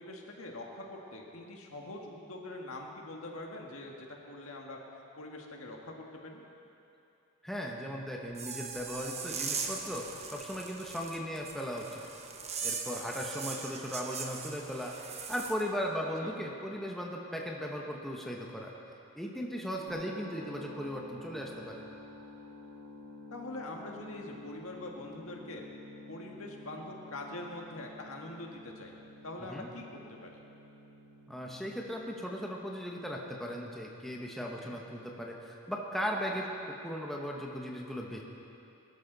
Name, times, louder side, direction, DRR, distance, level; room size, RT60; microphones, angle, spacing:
voice 1, 0.0-4.8 5.2-6.4 12.8-13.0 16.2-16.3 23.3-25.7 26.1-28.9 29.2-30.4 34.6-34.8, left 2 dB, 65° left, 0 dB, 1.8 m, -44 dB
voice 2, 7.4-12.0 12.6-14.9 15.3-18.7 19.1-21.8 29.5-29.7 31.3-38.2, equal, ahead, -1 dB, 1.0 m, -37 dB
sound 1, 8.3-15.6, right 5 dB, 30° right, 1.0 m, -40 dB
sound 2, 19.9-35.8, left 1 dB, 70° right, 1.4 m, -51 dB
20.5 x 13.0 x 4.0 m, 2.9 s
head